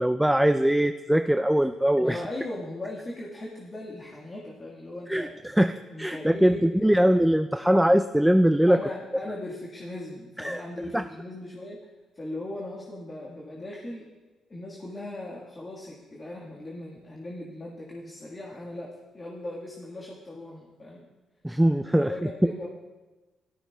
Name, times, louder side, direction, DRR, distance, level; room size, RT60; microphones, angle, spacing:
voice 1, 0.0-2.2 5.1-8.8 10.4-10.6 10.9-11.0 21.4-22.1, equal, 5° right, 9 dB, 0.3 m, -22 dB
voice 2, 2.0-5.3 5.9-7.1 7.6-7.8 8.7-11.8 12.1-14.1 14.5-21.0 22.0-22.7, left 1 dB, 30° left, -2 dB, 1.6 m, -38 dB
14.0 x 12.5 x 2.3 m, 1.2 s
cardioid pair, 70°, 0 cm